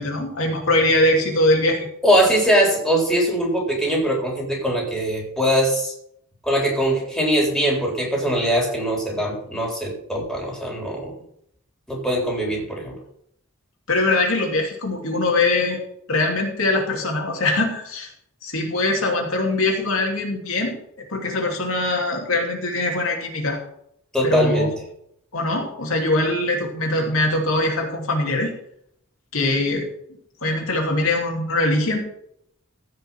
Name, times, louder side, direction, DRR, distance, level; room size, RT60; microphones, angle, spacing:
voice 1, 0.0-1.8 13.9-15.8 16.1-18.1 18.4-20.8 21.1-23.6 24.2-24.7 25.3-28.5 29.3-29.9 30.4-32.0, left 2 dB, 70° left, 0 dB, 2.6 m, -22 dB
voice 2, 2.0-5.9 6.4-11.1 11.9-13.0 24.1-24.7, equal, ahead, -2 dB, 3.7 m, -21 dB
15.0 x 5.7 x 5.8 m, 0.71 s
head